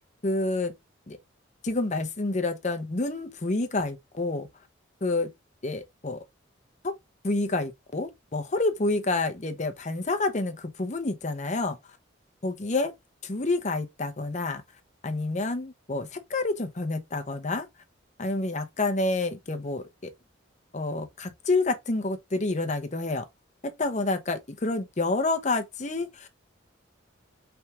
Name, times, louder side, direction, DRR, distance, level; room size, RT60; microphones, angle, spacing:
voice 1, 0.2-0.7 1.1-1.2 1.6-4.5 5.0-5.3 5.6-6.2 6.8-7.0 7.2-11.8 12.4-12.9 13.2-14.6 15.0-17.7 18.2-20.1 20.7-23.2 23.6-26.3, left 2 dB, 35° left, 0.8 m, -28 dB
4.7 x 3.5 x 2.9 m
head